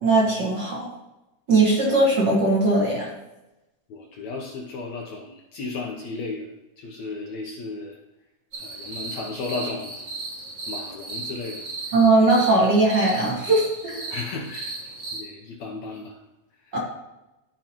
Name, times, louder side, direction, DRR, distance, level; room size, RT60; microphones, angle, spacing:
voice 1, 0.0-0.9 1.5-3.1 11.9-14.0 16.7-16.8, right 2 dB, 40° right, -4 dB, 1.8 m, -19 dB
voice 2, 3.9-6.5 6.8-8.0 8.6-10.1 10.7-11.7 14.1-16.2 16.7-16.8, left 3 dB, 70° left, 0 dB, 1.8 m, -34 dB
sound 1, 8.5-15.2, right 3 dB, 70° right, 0.7 m, -35 dB
14.0 x 5.3 x 3.0 m, 0.98 s
omnidirectional pair, 3.8 m